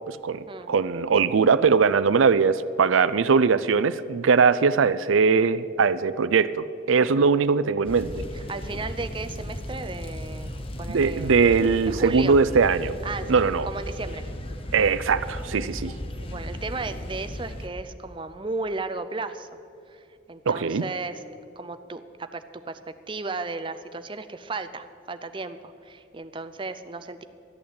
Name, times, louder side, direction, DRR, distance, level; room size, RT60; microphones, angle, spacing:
voice 1, 0.1-8.3 10.9-13.0 13.3-13.7 14.7-15.9 20.5-20.9, right 5 dB, 85° right, 15 dB, 0.5 m, -21 dB
sound 1, 7.9-17.7, left 1 dB, 30° left, 0.8 m, -35 dB
voice 2, 8.3-11.3 11.9-12.3 13.0-14.3 16.3-19.5 19.9-21.2 21.6-27.2, right 3 dB, 25° right, 10 dB, 0.5 m, -35 dB
13.0 x 8.7 x 8.5 m, 2.6 s
head